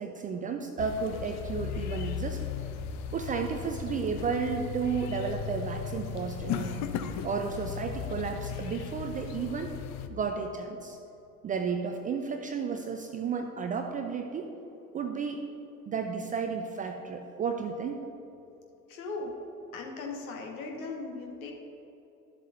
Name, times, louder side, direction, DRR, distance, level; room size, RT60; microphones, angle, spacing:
voice 1, 0.0-2.4 3.1-6.8 7.2-9.7 10.1-11.0 11.4-14.5 14.9-15.4 15.9-18.0, right 5 dB, 20° right, 5 dB, 0.4 m, -33 dB
sound 1, 0.8-10.1, left 7 dB, 40° left, 0.6 m, -36 dB
voice 2, 18.9-19.3 19.7-21.5, left 3 dB, 65° left, 1 dB, 1.4 m, -38 dB
12.5 x 7.3 x 2.6 m, 2.9 s
figure-of-eight pair, 70°, 45 cm